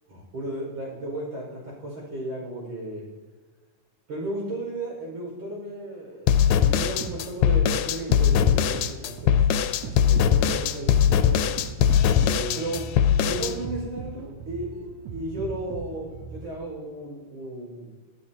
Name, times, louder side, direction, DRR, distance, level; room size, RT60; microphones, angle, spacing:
voice 1, 0.1-1.5 1.8-3.1 4.1-9.5 9.8-11.5 12.2-13.0 13.2-17.9, right 1 dB, 50° right, -3 dB, 6.5 m, -34 dB
sound 1, 6.3-13.5, left 9 dB, 90° left, 2.4 m, -21 dB
sound 2, 6.8-16.7, right 5 dB, 70° right, 2.5 m, -38 dB
24.5 x 12.0 x 2.9 m, 1.4 s
omnidirectional pair, 3.8 m